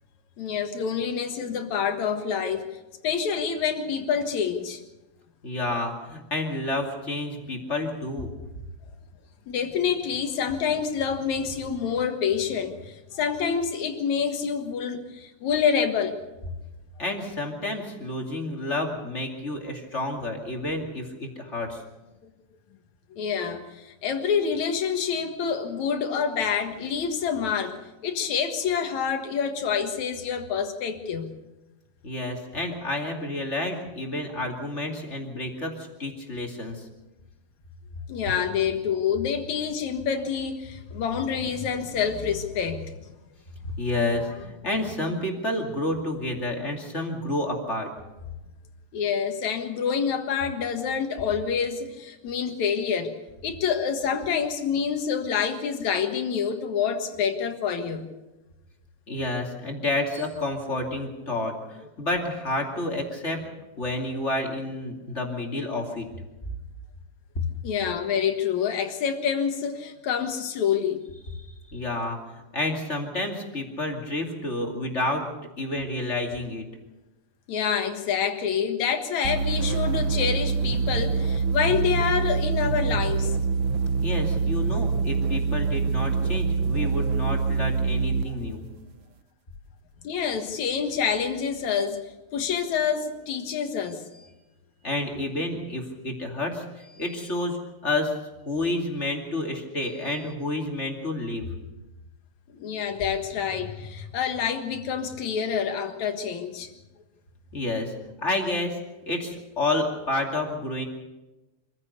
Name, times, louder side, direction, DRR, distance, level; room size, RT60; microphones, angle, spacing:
voice 1, 0.4-2.8 3.0-4.8 9.5-16.2 23.2-31.3 38.1-42.8 48.9-53.1 53.4-58.1 67.6-71.0 77.5-83.4 88.3-88.4 90.0-92.0 92.3-94.0 102.6-106.7, left 7 dB, 70° left, 6 dB, 2.9 m, -27 dB
voice 2, 5.4-8.3 17.0-21.8 32.0-35.7 36.0-36.8 43.8-47.9 59.1-63.5 63.8-66.1 71.7-75.2 75.6-76.7 84.0-88.6 94.8-97.6 97.8-98.1 98.5-101.4 107.5-107.9 108.2-108.8 109.0-110.8, left 2 dB, 25° left, 2 dB, 2.6 m, -29 dB
sound 1, 79.2-88.4, right 4 dB, 85° right, 1.1 m, -25 dB
25.5 x 15.0 x 6.7 m, 1.1 s
omnidirectional pair, 3.4 m